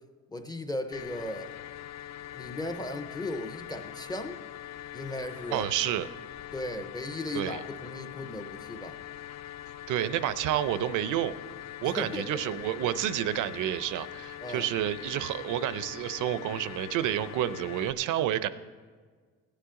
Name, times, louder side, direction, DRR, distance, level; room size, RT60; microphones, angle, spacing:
voice 1, 0.3-1.6 2.3-4.4 4.9-5.7 6.5-9.0 12.0-12.4 14.4-14.6, left 1 dB, 15° left, 6 dB, 0.6 m, -36 dB
sound 1, 0.9-17.9, left 13 dB, 60° left, 0.5 m, -43 dB
voice 2, 5.5-6.1 7.3-7.6 9.9-11.3 11.8-18.5, right 11 dB, 80° right, 14 dB, 0.6 m, -29 dB
17.0 x 10.0 x 3.7 m, 1.5 s
cardioid pair, 160°, 30 cm